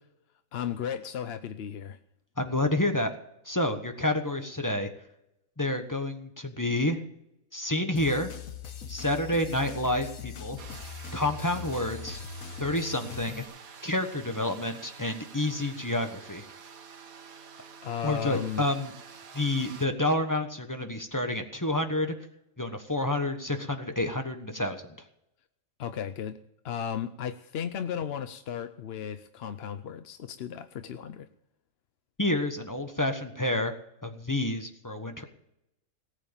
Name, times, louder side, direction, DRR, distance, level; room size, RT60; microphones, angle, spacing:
voice 1, 0.5-2.0 17.8-18.7 25.8-26.4 26.6-31.3, left 8 dB, 55° left, 11 dB, 0.8 m, -35 dB
voice 2, 2.4-3.1 3.4-4.9 5.6-7.0 7.5-8.3 8.9-10.6 11.1-12.2 12.6-13.4 13.8-16.4 18.0-18.9 19.3-22.1 22.6-25.0 32.2-33.7 34.0-35.2, left 1 dB, 15° left, 6 dB, 1.1 m, -29 dB
sound 1, 8.0-13.4, left 6 dB, 75° left, 1.6 m, -41 dB
sound 2, 10.6-19.9, right 6 dB, 85° right, 1.7 m, -48 dB
18.0 x 8.1 x 7.1 m, 0.83 s
omnidirectional pair, 1.4 m